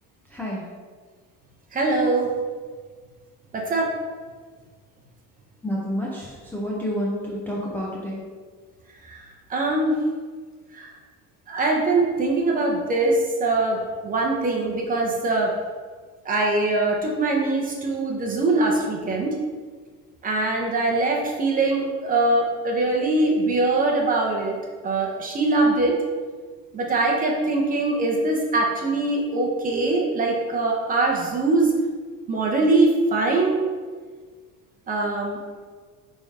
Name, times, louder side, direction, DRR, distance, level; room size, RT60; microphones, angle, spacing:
voice 1, 0.3-0.6 5.6-8.2, equal, 5° left, -5 dB, 0.6 m, -29 dB
voice 2, 1.7-2.3 3.5-3.9 9.1-9.2 9.5-9.9 10.7-10.9 11.5-15.5 16.3-19.3 20.2-24.6 24.8-26.0 26.7-31.7 32.3-33.6 34.9-35.4, right 2 dB, 25° right, -1 dB, 0.8 m, -22 dB
7.0 x 3.7 x 4.1 m, 1.5 s
cardioid pair, 175°, 35 cm